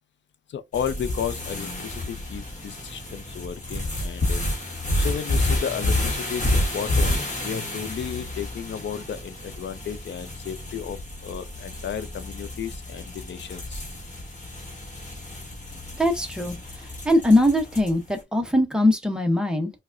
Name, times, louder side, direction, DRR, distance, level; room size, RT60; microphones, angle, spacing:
voice 1, 0.5-7.1 7.4-13.9, left 8 dB, 75° left, 0.5 m, -33 dB
sound 1, 0.7-18.1, left 1 dB, 40° left, 1.0 m, -30 dB
voice 2, 16.0-16.5 17.0-19.7, left 1 dB, 5° right, 0.7 m, -21 dB
4.7 x 2.1 x 2.5 m
wide cardioid pair, 170°, 19 cm